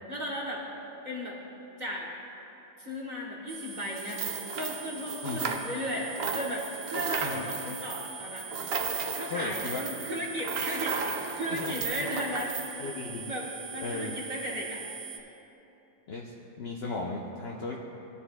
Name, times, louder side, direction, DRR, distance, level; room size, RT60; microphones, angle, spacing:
voice 1, 0.1-0.7 1.0-1.4 1.8-2.1 2.8-4.3 4.6-8.5 9.1-12.8 13.2-14.8, equal, 30° right, -3 dB, 1.1 m, -35 dB
sound 1, 3.5-15.2, right 6 dB, 60° right, 1.2 m, -43 dB
sound 2, 4.0-5.9 6.2-12.7, right 5 dB, 75° right, 0.5 m, -34 dB
voice 2, 9.3-9.9 11.5-12.1 12.8-13.2 13.8-14.2 16.1-17.8, left 3 dB, 65° left, -2 dB, 0.6 m, -36 dB
17.0 x 9.8 x 2.2 m, 3.0 s
omnidirectional pair, 1.8 m